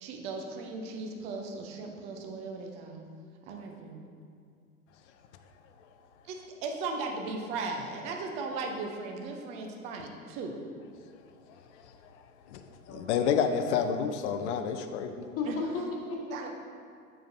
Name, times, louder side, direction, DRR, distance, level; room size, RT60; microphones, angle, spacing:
voice 1, 0.0-3.1 3.5-4.0 6.2-10.6 15.5-15.6 16.3-16.5, right 3 dB, 15° right, 3 dB, 0.3 m, -37 dB
voice 2, 11.8-12.1 12.5-12.6 12.9-15.1, left 7 dB, 55° left, 7 dB, 0.5 m, -29 dB
voice 3, 12.9-13.6 15.1-16.5, left 3 dB, 30° left, -2 dB, 1.3 m, -36 dB
7.4 x 5.9 x 2.6 m, 2.3 s
figure-of-eight pair, 95°, 44 cm